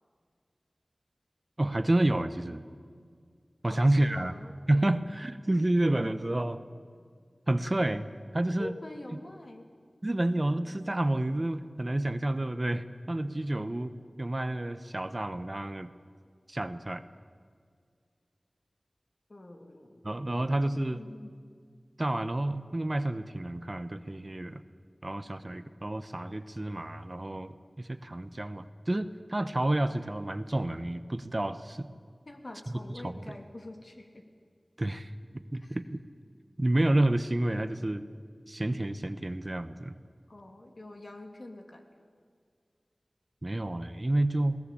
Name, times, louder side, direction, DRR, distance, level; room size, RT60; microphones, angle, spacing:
voice 1, 1.6-2.7 3.6-4.3 4.7-6.6 7.5-8.1 8.3-8.7 10.0-15.9 16.5-17.0 20.0-21.0 22.0-24.6 25.0-31.9 33.0-33.3 34.8-35.1 35.5-35.9 36.6-38.0 38.5-39.9 43.4-44.6, right 1 dB, 35° right, 12 dB, 1.0 m, -29 dB
voice 2, 3.7-4.6 8.6-9.7 19.3-20.4 20.9-21.3 32.2-34.2 35.6-35.8 40.3-41.9, left 1 dB, 55° left, 3 dB, 3.0 m, -45 dB
21.0 x 18.0 x 8.7 m, 2.1 s
wide cardioid pair, 45°, 0 cm